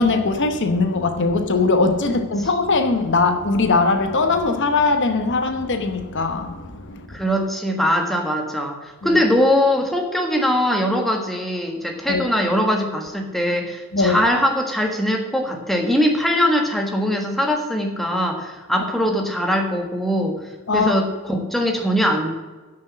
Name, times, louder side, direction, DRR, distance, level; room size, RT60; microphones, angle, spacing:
voice 1, 0.0-7.1 9.0-9.2 12.1-12.2 13.9-14.2 20.7-20.9, left 3 dB, 55° left, 0.9 m, -20 dB
voice 2, 7.1-20.4 20.7-22.3, equal, ahead, 1.5 m, -21 dB
10.0 x 6.5 x 7.5 m
head